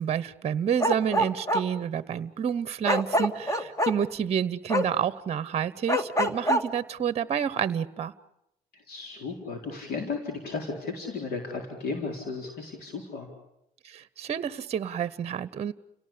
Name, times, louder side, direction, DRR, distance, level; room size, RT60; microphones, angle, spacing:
voice 1, 0.0-8.1 13.8-15.7, right 8 dB, 40° right, 17 dB, 0.9 m, -29 dB
Bark, 0.8-1.6 2.9-3.9 4.7-4.8 5.9-6.6, equal, 20° left, 1.8 m, -24 dB
voice 2, 8.9-13.3, left 4 dB, 65° left, 3 dB, 4.3 m, -34 dB
30.0 x 18.0 x 8.6 m, 0.83 s
cardioid pair, 110°, 17 cm